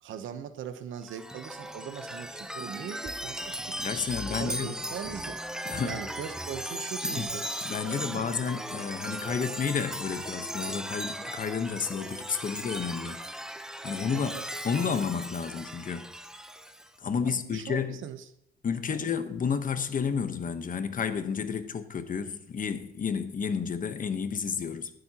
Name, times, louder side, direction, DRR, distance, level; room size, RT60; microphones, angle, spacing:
voice 1, 0.0-3.8 4.3-5.4 5.8-7.5 7.8-8.3 14.1-14.5 17.3-18.2 18.9-19.1, right 8 dB, 75° right, 0.9 m, -40 dB
Chime, 1.0-16.9, equal, 5° right, 0.8 m, -37 dB
voice 2, 3.8-4.7 5.6-6.0 7.0-7.3 7.6-13.2 13.8-14.4 14.6-16.1 17.0-18.0 18.6-24.9, left 6 dB, 45° left, 1.1 m, -31 dB
21.0 x 7.9 x 2.9 m
cardioid pair, 90°, 20 cm